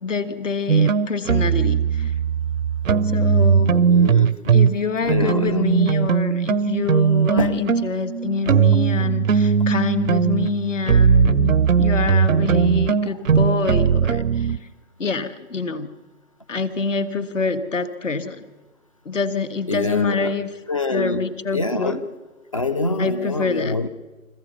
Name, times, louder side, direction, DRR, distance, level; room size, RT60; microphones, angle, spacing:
voice 1, 0.0-2.1 3.1-3.9 4.5-14.5 15.0-15.9 16.5-18.5 19.0-20.5 20.9-22.0 23.0-23.8, left 4 dB, 60° left, 11 dB, 1.6 m, -26 dB
sound 1, 0.7-4.8 5.1-14.6, right 6 dB, 65° right, 0.6 m, -19 dB
voice 2, 3.8-4.7 5.0-5.7 7.4-7.6 19.7-20.3 20.7-21.2 21.5-22.0 22.5-23.9, left 2 dB, 25° left, 14 dB, 0.5 m, -25 dB
26.0 x 14.5 x 7.0 m, 1.2 s
figure-of-eight pair, 140°, 43 cm